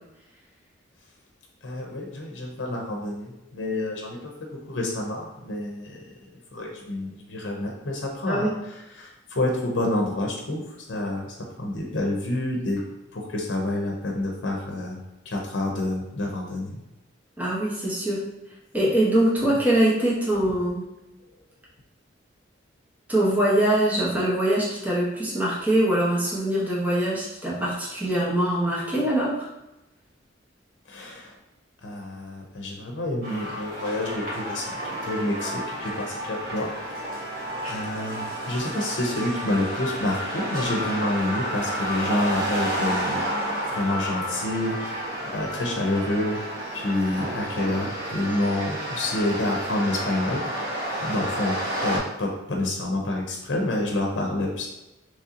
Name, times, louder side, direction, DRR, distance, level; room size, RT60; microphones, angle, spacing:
voice 1, 1.6-6.0 6.5-8.5 9.0-10.6 10.9-12.8 13.1-15.0 15.3-16.8 19.4-19.5 30.9-31.3 31.8-36.7 37.7-43.2 43.7-46.4 46.7-51.6 51.8-54.7, left 1 dB, 75° left, 0 dB, 0.7 m, -28 dB
voice 2, 17.4-18.2 18.7-20.9 23.1-29.5, right 1 dB, 10° right, -6 dB, 0.9 m, -23 dB
sound 1, 33.2-52.0, equal, 45° right, 1.3 m, -31 dB
3.2 x 2.8 x 3.7 m, 0.94 s
head